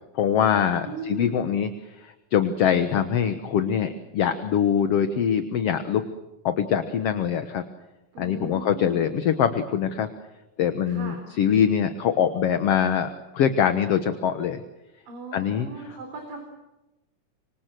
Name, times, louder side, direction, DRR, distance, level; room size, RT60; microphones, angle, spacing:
voice 1, 0.2-1.7 2.0-6.0 6.4-7.6 8.2-10.1 10.6-13.1 13.3-14.6 15.3-16.0, left 8 dB, 55° left, 10 dB, 1.9 m, -23 dB
voice 2, 0.8-1.4 8.1-9.1 10.9-11.2 15.1-16.4, right 3 dB, 90° right, 3 dB, 5.5 m, -38 dB
26.5 x 25.0 x 7.7 m, 0.98 s
omnidirectional pair, 3.8 m